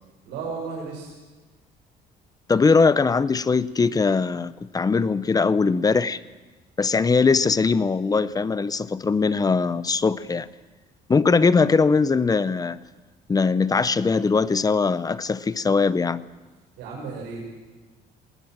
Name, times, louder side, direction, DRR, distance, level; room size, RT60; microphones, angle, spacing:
voice 1, 0.3-1.1 16.8-17.6, right 4 dB, 90° right, -3 dB, 5.3 m, -34 dB
voice 2, 2.5-6.2 6.8-10.5 11.1-12.8 13.3-16.2, left 4 dB, 20° left, 16 dB, 0.7 m, -21 dB
20.5 x 18.5 x 7.5 m, 1.3 s
cardioid pair, 110°, 17 cm